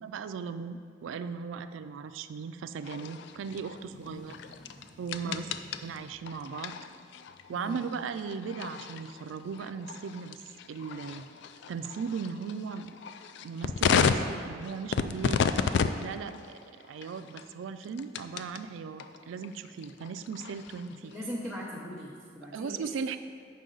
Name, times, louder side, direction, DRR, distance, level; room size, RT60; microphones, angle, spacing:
voice 1, 0.0-4.3 5.0-5.5 5.8-6.7 7.5-10.4 10.7-11.3 11.7-12.9 13.4-15.4 16.0-16.6 16.9-21.1 22.5-23.2, right 5 dB, 80° right, 11 dB, 0.3 m, -37 dB
sound 1, 2.8-18.6 19.0-21.1, left 6 dB, 65° left, 0.3 m, -33 dB
sound 2, 3.7-6.9, equal, 40° left, 0.9 m, -55 dB
voice 2, 3.9-4.2 5.2-5.5 7.5-7.8 21.1-22.9, left 1 dB, 5° left, -9 dB, 0.8 m, -40 dB
7.7 x 5.4 x 3.9 m, 2.2 s
head